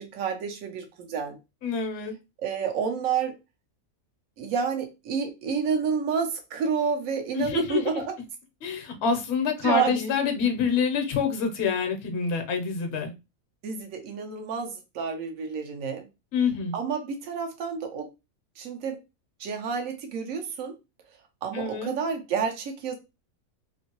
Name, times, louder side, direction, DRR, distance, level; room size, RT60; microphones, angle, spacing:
voice 1, 0.0-1.4 2.4-3.3 4.4-8.0 9.6-10.1 13.6-16.1 16.7-18.1 18.6-19.0 19.4-20.7 21.4-22.9, right 6 dB, 70° right, 1.1 m, -29 dB
voice 2, 1.6-2.1 7.3-8.0 8.6-13.1 16.3-16.7 21.5-21.9, left 5 dB, 55° left, 0.9 m, -26 dB
3.0 x 2.7 x 2.9 m
omnidirectional pair, 1.5 m